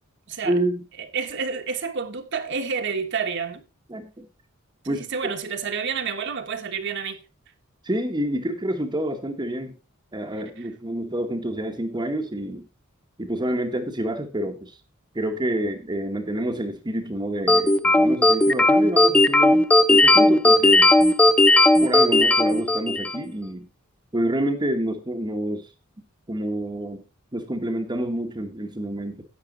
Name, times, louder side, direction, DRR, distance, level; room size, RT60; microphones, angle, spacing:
voice 1, 0.4-0.8 3.9-4.3 4.9-5.1 7.8-9.8 10.1-12.6 13.2-14.8 15.1-19.6 19.9-20.9 21.8-23.7 24.1-25.7 26.3-27.0 27.3-29.2, right 1 dB, 20° right, 1.0 m, -28 dB
voice 2, 1.1-3.6 4.8-7.2, right 5 dB, 55° right, 1.3 m, -29 dB
sound 1, 17.5-23.2, left 2 dB, 5° left, 0.5 m, -16 dB
11.0 x 8.2 x 3.8 m
head